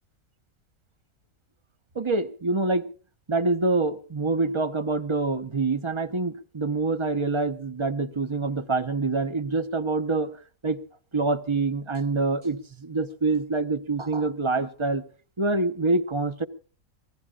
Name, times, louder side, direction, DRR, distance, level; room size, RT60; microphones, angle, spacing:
voice 1, 1.9-2.9 3.3-10.8 11.1-15.0 15.4-16.4, right 3 dB, 25° right, 11 dB, 0.9 m, -26 dB
26.5 x 17.5 x 2.5 m, 0.39 s
omnidirectional pair, 1.5 m